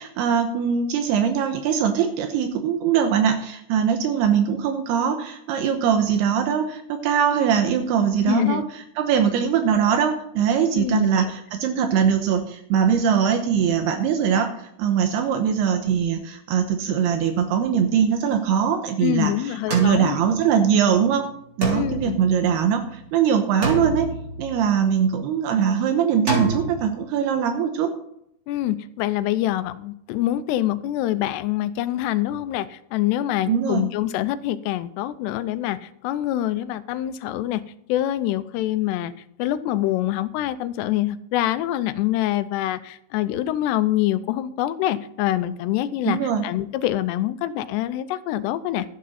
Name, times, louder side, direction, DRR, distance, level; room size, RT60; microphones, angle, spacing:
voice 1, 0.0-21.2 21.6-24.1 24.4-27.9 33.5-33.8 46.0-46.5, right 8 dB, 80° right, 6 dB, 2.9 m, -21 dB
voice 2, 8.2-8.6 10.7-11.3 19.0-20.2 21.7-22.2 28.5-37.6 37.9-39.1 39.4-48.9, left 13 dB, 90° left, 13 dB, 2.8 m, -25 dB
sound 1, 19.7-20.9 21.6-23.0 23.6-25.0 26.3-26.8, right 2 dB, 25° right, 3.5 m, -28 dB
12.5 x 10.0 x 4.2 m, 0.74 s
omnidirectional pair, 4.7 m